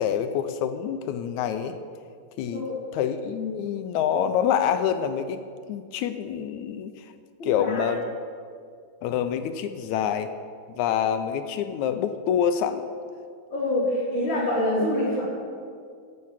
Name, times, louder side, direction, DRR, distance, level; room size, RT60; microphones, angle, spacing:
voice 1, 0.0-1.8 2.4-2.6 2.9-5.4 5.7-7.1 7.4-8.0 9.0-10.3 10.7-12.9, left 8 dB, 80° left, 9 dB, 2.0 m, -26 dB
voice 2, 2.5-2.8 7.4-7.9 13.5-15.2, left 1 dB, 40° left, -7 dB, 4.0 m, -26 dB
16.0 x 7.5 x 5.8 m, 2.2 s
omnidirectional pair, 3.4 m